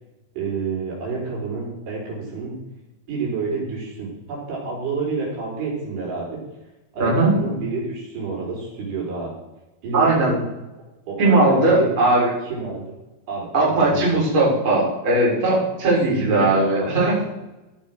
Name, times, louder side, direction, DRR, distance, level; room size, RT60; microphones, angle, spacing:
voice 1, 0.3-2.6 3.1-6.4 6.9-9.3 9.8-10.5 11.1-11.9 12.4-13.0 13.3-14.0 16.1-17.1, right 4 dB, 80° right, -5 dB, 6.5 m, -29 dB
voice 2, 7.0-7.3 9.9-10.3 11.2-12.3 13.5-17.1, right 2 dB, 30° right, -6 dB, 4.6 m, -18 dB
16.0 x 5.6 x 6.2 m, 1.0 s
omnidirectional pair, 4.7 m